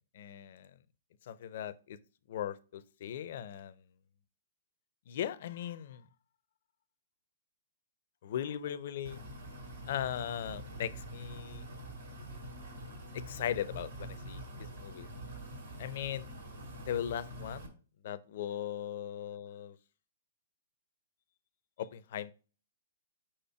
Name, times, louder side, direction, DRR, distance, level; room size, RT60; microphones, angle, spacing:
voice 1, 0.1-0.7 1.3-2.0 2.3-3.7 5.1-6.1 8.2-9.2 9.9-11.6 13.1-15.1 15.8-16.3 16.9-17.8 18.0-19.8 21.8-22.3, left 10 dB, 60° left, 0.5 m, -38 dB
sound 1, 9.0-17.7, right 1 dB, 85° right, 2.5 m, -45 dB
5.0 x 4.4 x 4.7 m
hypercardioid pair, 125°, 0 cm